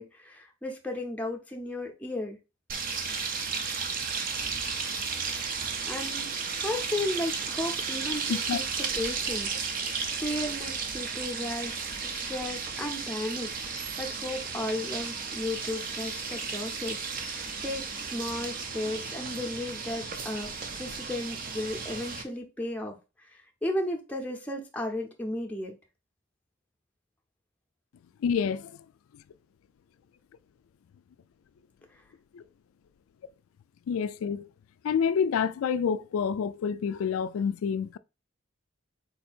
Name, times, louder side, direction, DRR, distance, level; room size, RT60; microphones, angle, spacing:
voice 1, 0.0-2.4 5.9-6.3 6.6-20.5 20.7-25.7 31.9-32.0, left 1 dB, 5° left, 0.7 m, -35 dB
sound 1, 2.7-22.2, right 5 dB, 40° right, 0.5 m, -34 dB
voice 2, 28.2-28.8 32.3-32.4 33.9-34.5 34.8-38.0, left 6 dB, 80° left, 0.3 m, -28 dB
4.2 x 2.7 x 4.3 m
head